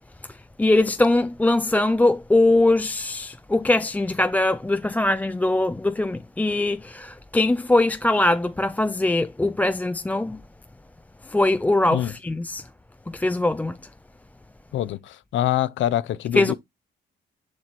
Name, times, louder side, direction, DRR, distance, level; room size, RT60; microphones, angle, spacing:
voice 1, 0.2-10.4 11.2-12.7 13.1-13.8 16.3-16.5, left 2 dB, 10° left, 0.3 m, -22 dB
voice 2, 14.7-16.5, left 12 dB, 75° left, 0.6 m, -25 dB
6.8 x 5.8 x 3.0 m
cardioid pair, 90°, 20 cm